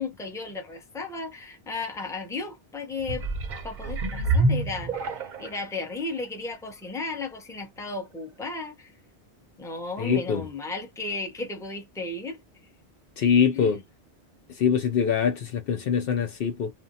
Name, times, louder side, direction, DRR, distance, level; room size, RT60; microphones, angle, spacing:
voice 1, 0.0-3.2 3.6-5.0 5.4-8.9 9.6-12.4 13.5-13.7, left 3 dB, 5° left, 0.7 m, -34 dB
sound 1, 3.0-5.6 6.2-6.3, right 2 dB, 55° right, 0.6 m, -27 dB
voice 2, 10.0-10.4 13.2-13.8 14.6-16.7, left 7 dB, 65° left, 0.7 m, -23 dB
2.5 x 2.1 x 2.6 m
omnidirectional pair, 1.1 m